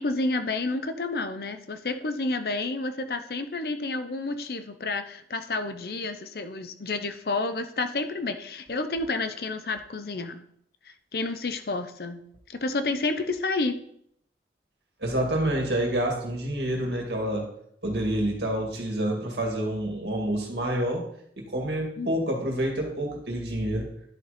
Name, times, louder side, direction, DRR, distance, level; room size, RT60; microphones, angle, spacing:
voice 1, 0.0-10.4 11.1-12.2 12.5-13.7 22.0-22.1, left 3 dB, 60° left, 9 dB, 0.7 m, -30 dB
voice 2, 15.0-17.5 17.8-21.0 21.4-23.9, right 1 dB, 75° right, 1 dB, 2.1 m, -28 dB
10.5 x 4.1 x 5.0 m, 0.69 s
head